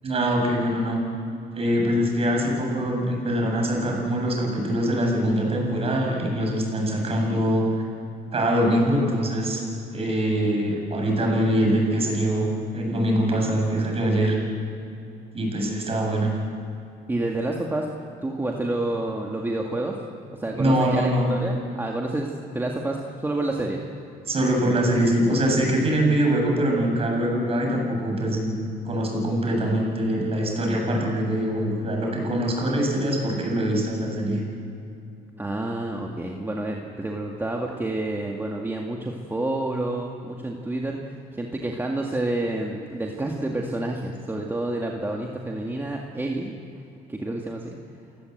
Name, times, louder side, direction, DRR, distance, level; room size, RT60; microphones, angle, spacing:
voice 1, 0.0-1.0 1.5-7.7 8.3-9.6 9.9-12.5 12.7-14.4 15.3-16.3 20.5-21.3 24.3-28.6 28.9-34.4, right 1 dB, 35° right, 0 dB, 7.5 m, -23 dB
voice 2, 17.1-17.9 18.2-19.9 20.3-23.8 35.4-46.5 47.1-47.8, right 2 dB, 15° right, 0 dB, 2.1 m, -29 dB
29.0 x 17.0 x 8.1 m, 2.8 s
cardioid pair, 110°, 17 cm